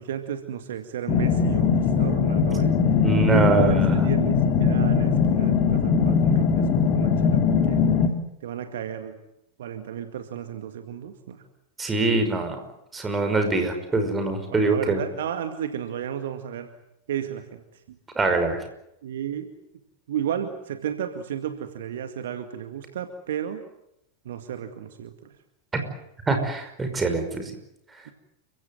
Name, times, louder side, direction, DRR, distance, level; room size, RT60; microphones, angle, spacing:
voice 1, 0.0-2.8 3.3-7.8 8.4-9.2 9.6-11.4 14.5-16.7 17.1-17.6 19.0-19.5 20.1-23.6 24.3-25.1, right 9 dB, 60° right, 8 dB, 2.1 m, -33 dB
sound 1, 1.1-8.1, left 6 dB, 35° left, 3.0 m, -21 dB
voice 2, 3.0-4.0 11.8-12.6 12.9-15.0 18.2-18.6 25.7-25.8 26.3-27.5, right 3 dB, 15° right, 6 dB, 5.6 m, -23 dB
30.0 x 16.5 x 9.5 m, 0.81 s
figure-of-eight pair, 90°, 0 cm